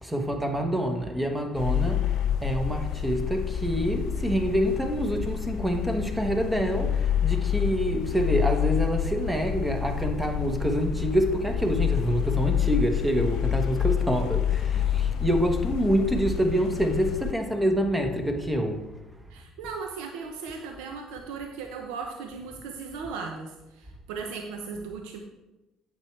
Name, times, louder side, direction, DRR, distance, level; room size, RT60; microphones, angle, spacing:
voice 1, 0.0-2.1 2.4-18.8, equal, 10° right, 1.3 m, -26 dB
sound 1, 1.5-17.3, left 9 dB, 65° left, 0.4 m, -28 dB
voice 2, 19.3-25.2, right 5 dB, 80° right, 0.8 m, -37 dB
8.8 x 7.1 x 3.3 m
supercardioid pair, 70°, 0 cm